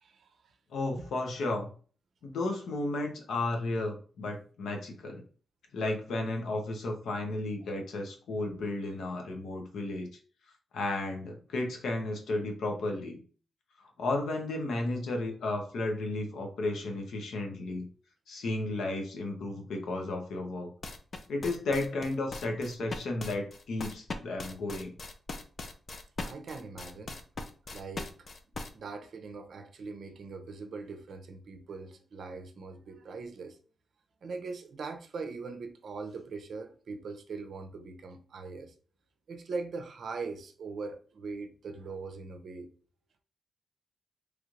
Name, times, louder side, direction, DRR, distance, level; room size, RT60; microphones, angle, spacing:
voice 1, 0.0-0.5 1.0-1.1 7.6-7.7 8.4-8.7 26.2-27.2 27.7-28.3 28.7-33.6 34.2-38.7 39.3-42.7, right 4 dB, 65° right, 0.5 m, -41 dB
voice 2, 0.7-1.7 2.2-5.2 5.7-10.1 10.7-13.2 14.0-17.8 18.3-20.7 21.3-24.9, left 2 dB, 80° left, 0.8 m, -33 dB
sound 1, 20.8-28.7, left 3 dB, 40° left, 0.4 m, -40 dB
3.2 x 3.1 x 2.4 m
cardioid pair, 115°, 0 cm